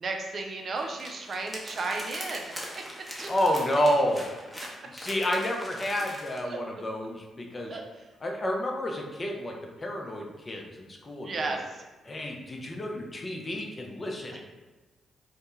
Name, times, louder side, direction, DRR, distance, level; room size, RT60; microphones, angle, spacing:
voice 1, 0.0-2.4 2.7-2.8 3.2-3.3 4.8-4.9 6.5-6.6 7.7-7.8 11.2-11.8 14.3-14.4, right 3 dB, 55° right, 2 dB, 0.4 m, -33 dB
sound 1, 0.8-6.4, equal, ahead, 0.7 m, -42 dB
voice 2, 3.3-4.3 4.8-7.8 8.2-9.5 9.8-11.6 12.0-14.4, equal, 35° left, 1 dB, 0.5 m, -30 dB
2.1 x 2.1 x 3.0 m, 1.2 s
hypercardioid pair, 40°, 0 cm